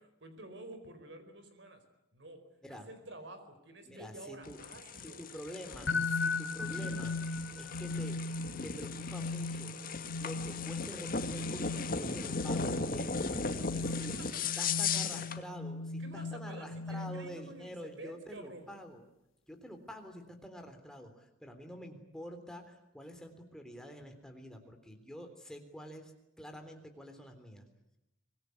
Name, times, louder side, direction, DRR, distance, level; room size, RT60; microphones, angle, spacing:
voice 1, 0.0-1.8 2.1-2.4 2.7-5.2 13.8-15.1 16.0-18.7, right 1 dB, 65° right, 9 dB, 4.8 m, -50 dB
voice 2, 3.8-4.6 5.2-7.1 7.6-8.2 8.6-9.8 10.2-13.2 13.7-19.0 19.5-26.1 26.4-27.6, equal, 5° left, 4 dB, 3.5 m, -47 dB
sound 1, 4.4-15.4, left 4 dB, 45° left, 1.9 m, -37 dB
sound 2, 5.9-17.6, left 3 dB, 90° left, 1.6 m, -38 dB
25.0 x 21.0 x 9.6 m, 0.86 s
head